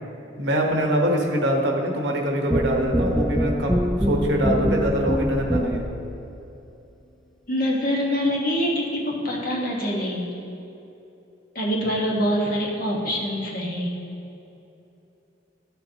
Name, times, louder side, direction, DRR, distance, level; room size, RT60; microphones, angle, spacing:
voice 1, 0.4-5.8, right 1 dB, 70° right, 1 dB, 1.1 m, -23 dB
sound 1, 2.5-6.0, equal, ahead, 0.3 m, -24 dB
voice 2, 7.5-10.2 11.5-13.9, equal, 50° left, -3 dB, 1.5 m, -25 dB
12.0 x 7.0 x 2.9 m, 2.8 s
head